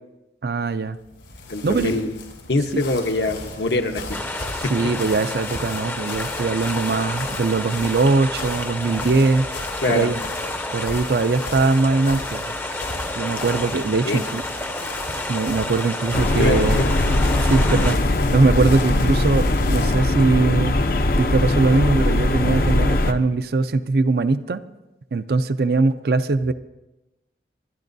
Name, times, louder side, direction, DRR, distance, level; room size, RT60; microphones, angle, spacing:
voice 1, 0.4-1.0 1.6-2.1 4.5-9.5 9.9-10.2 10.7-12.5 13.2-14.4 15.3-16.8 17.5-18.0 18.3-20.7 21.2-24.6 25.1-26.5, right 3 dB, 55° right, 12 dB, 0.5 m, -21 dB
sound 1, 1.0-20.1, left 3 dB, 90° left, 4.1 m, -36 dB
voice 2, 1.5-2.2 2.5-4.0 4.6-4.7 9.8-10.1 14.1-14.2 16.4-16.9, left 2 dB, 70° left, 5 dB, 1.0 m, -23 dB
sound 2, 4.1-18.0, left 1 dB, 10° left, 0.6 m, -30 dB
sound 3, 16.1-23.1, left 2 dB, 50° left, 0.6 m, -20 dB
27.0 x 11.0 x 2.7 m, 1.0 s
head